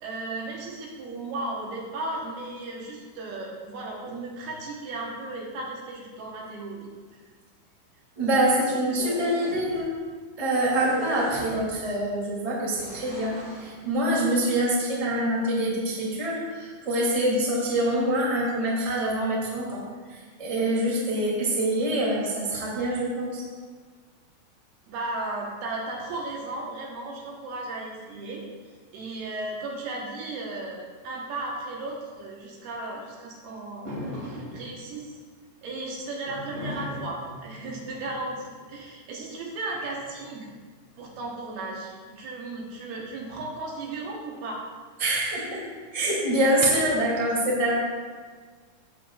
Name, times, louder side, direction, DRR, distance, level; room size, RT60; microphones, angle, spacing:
voice 1, 0.0-6.9 24.9-28.4 28.9-35.1 35.6-40.5 41.0-44.6, right 2 dB, 70° right, -2 dB, 3.0 m, -35 dB
voice 2, 8.2-9.9 10.4-23.4 45.0-45.6 45.9-47.7, right 1 dB, 10° right, -6 dB, 1.7 m, -25 dB
sound 1, 8.8-9.8 10.8-11.9 12.8-13.7, right 1 dB, 30° right, 3.0 m, -38 dB
sound 2, 33.9-34.8 36.3-38.7 39.7-40.7, left 1 dB, 50° right, 4.2 m, -38 dB
16.0 x 7.8 x 2.4 m, 1.5 s
omnidirectional pair, 5.0 m